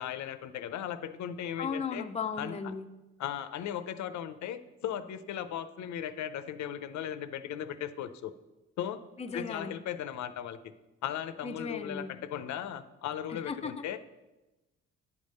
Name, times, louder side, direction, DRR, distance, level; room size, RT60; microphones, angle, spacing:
voice 1, 0.0-2.0 2.4-2.6 3.2-8.3 8.8-9.0 9.3-10.6 11.0-14.0, left 10 dB, 70° left, 12 dB, 0.6 m, -37 dB
voice 2, 1.6-2.9 9.2-9.8 11.4-12.2 13.3-13.8, left 5 dB, 20° left, 7 dB, 0.5 m, -36 dB
9.6 x 3.6 x 6.5 m, 1.1 s
cardioid pair, 90°, 30 cm